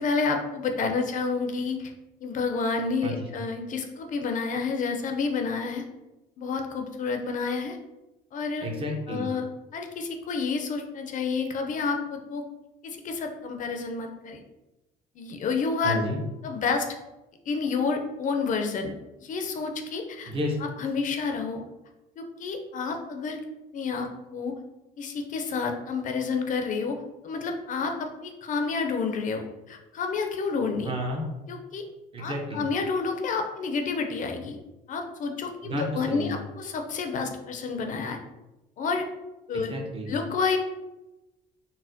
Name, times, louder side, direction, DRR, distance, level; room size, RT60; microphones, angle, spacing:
voice 1, 0.0-1.9 2.2-5.8 6.4-7.8 8.3-8.7 9.1-9.4 9.7-12.4 12.8-14.4 15.2-16.0 16.4-16.9 17.5-20.3 20.8-21.6 22.2-23.4 23.7-24.5 25.0-27.0 27.2-30.9 31.5-31.9 32.2-34.6 34.9-38.2 38.8-39.1 39.5-39.8 40.1-40.6, left 4 dB, 50° left, 4 dB, 0.4 m, -29 dB
voice 2, 8.6-9.3 15.8-16.2 20.3-20.6 30.8-31.2 32.1-32.6 35.6-36.3 39.5-40.1, equal, 35° right, 1 dB, 0.7 m, -31 dB
4.1 x 2.1 x 2.6 m, 1.0 s
cardioid pair, 110°, 17 cm